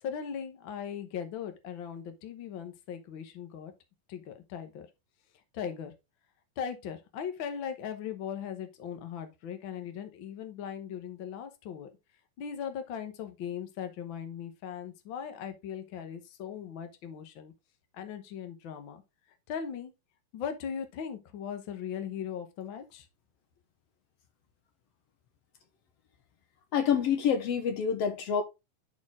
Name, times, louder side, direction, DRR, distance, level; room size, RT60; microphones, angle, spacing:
voice 1, 0.0-3.7 4.1-4.9 5.5-5.9 6.6-11.9 12.4-17.5 17.9-19.0 19.5-19.9 20.3-23.1, left 8 dB, 90° left, 1.0 m, -39 dB
voice 2, 26.7-28.4, left 7 dB, 70° left, 1.5 m, -27 dB
10.5 x 4.3 x 3.6 m
omnidirectional pair, 3.9 m